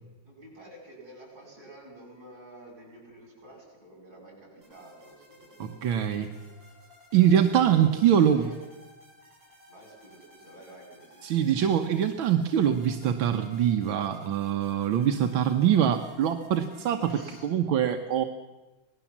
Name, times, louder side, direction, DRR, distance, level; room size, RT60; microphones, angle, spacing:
voice 1, 0.2-6.5 7.8-8.6 9.7-11.3 17.1-17.5, right 1 dB, 50° right, -2 dB, 8.3 m, -49 dB
sound 1, 4.6-17.5, left 2 dB, 65° right, 8.4 m, -55 dB
voice 2, 5.6-6.3 7.1-8.5 11.2-17.1 17.4-18.3, right 9 dB, 80° right, 6 dB, 1.8 m, -23 dB
26.5 x 19.0 x 7.3 m, 1.2 s
omnidirectional pair, 2.2 m